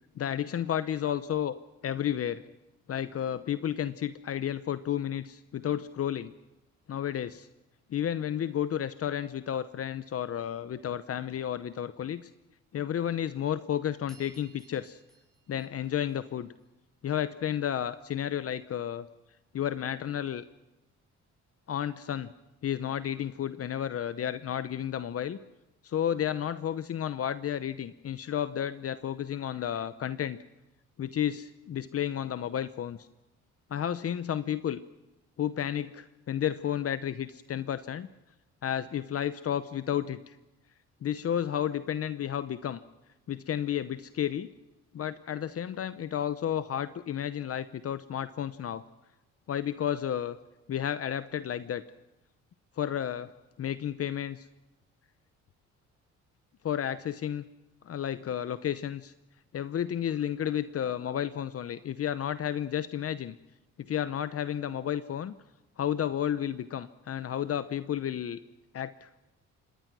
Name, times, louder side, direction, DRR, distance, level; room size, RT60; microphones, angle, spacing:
voice 1, 0.2-1.6 1.8-2.4 2.9-6.3 6.9-7.5 7.9-12.3 12.7-15.0 15.5-16.5 17.0-19.1 19.5-20.4 21.7-22.3 22.6-25.4 25.8-30.4 31.0-33.0 33.7-34.8 35.4-38.1 38.6-40.4 41.0-42.8 43.3-44.5 44.9-48.8 49.5-50.4 50.7-51.8 52.8-53.3 53.6-54.5 56.6-57.4 57.8-59.1 59.5-63.4 63.8-65.3 65.8-68.4 68.7-69.1, left 10 dB, 50° left, 13 dB, 0.8 m, -32 dB
sound 1, 14.1-16.6, right 2 dB, ahead, 7.1 m, -60 dB
26.0 x 20.0 x 6.2 m, 0.96 s
cardioid pair, 90°, 30 cm